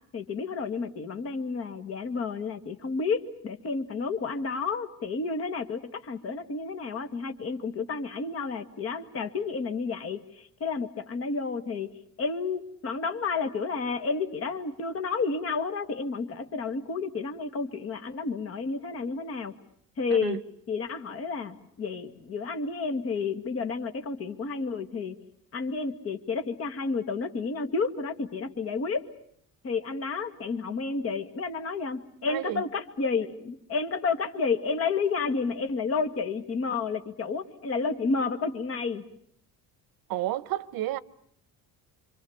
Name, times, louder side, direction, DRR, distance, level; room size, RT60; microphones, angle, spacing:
voice 1, 0.1-11.9 12.2-19.5 20.0-20.4 20.7-25.2 25.5-29.1 29.6-39.0, left 4 dB, 40° left, 2.1 m, -31 dB
voice 2, 20.1-20.4 32.3-32.6 40.1-41.0, right 14 dB, 70° right, 1.0 m, -31 dB
28.0 x 25.0 x 7.2 m
cardioid pair, 165°, 36 cm